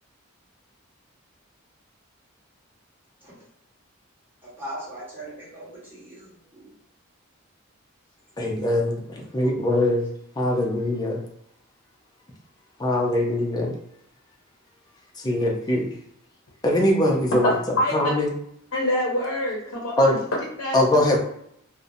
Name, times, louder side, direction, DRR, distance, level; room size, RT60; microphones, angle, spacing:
voice 1, 4.4-6.7, right 1 dB, 10° right, -9 dB, 1.2 m, -39 dB
voice 2, 8.4-10.1 10.4-11.2 12.8-13.7 15.2-15.9 16.6-17.5 17.9-18.3 20.0-20.1 20.7-21.2, left 1 dB, 20° left, -1 dB, 0.5 m, -22 dB
voice 3, 17.4-17.9 18.7-20.2 20.6-20.8, left 1 dB, 75° left, -2 dB, 0.6 m, -25 dB
2.6 x 2.1 x 2.6 m, 0.71 s
head